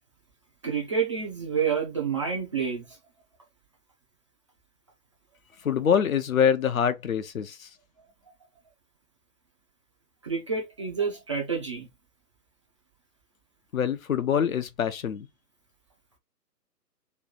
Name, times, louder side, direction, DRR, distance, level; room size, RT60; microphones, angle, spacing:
voice 1, 0.6-3.0 10.2-11.9, right 6 dB, 20° right, 0.5 m, -28 dB
voice 2, 5.6-7.7 13.7-15.3, left 8 dB, 55° left, 0.8 m, -25 dB
3.3 x 2.7 x 3.9 m
figure-of-eight pair, 130°, 49 cm